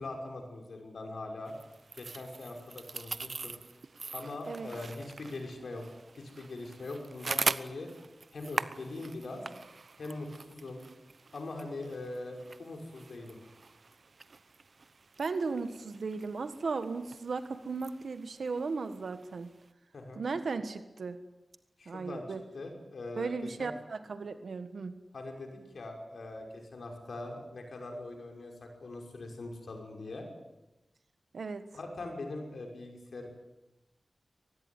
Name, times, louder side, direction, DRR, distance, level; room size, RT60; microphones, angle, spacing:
voice 1, 0.0-1.6 1.9-3.5 4.1-5.8 6.1-7.9 8.3-9.4 10.0-10.8 11.3-13.4 19.9-20.2 21.8-22.2 22.5-23.7 25.1-30.3 31.7-33.3, left 2 dB, 85° left, 2 dB, 5.7 m, -42 dB
sound 1, 1.5-19.7, right 4 dB, 60° right, 0.8 m, -42 dB
voice 2, 15.2-19.5 20.2-21.2 21.8-22.4 23.1-25.0 31.3-31.7, right 4 dB, 85° right, 9 dB, 1.5 m, -36 dB
23.5 x 19.5 x 9.7 m, 0.97 s
wide cardioid pair, 95°, 0 cm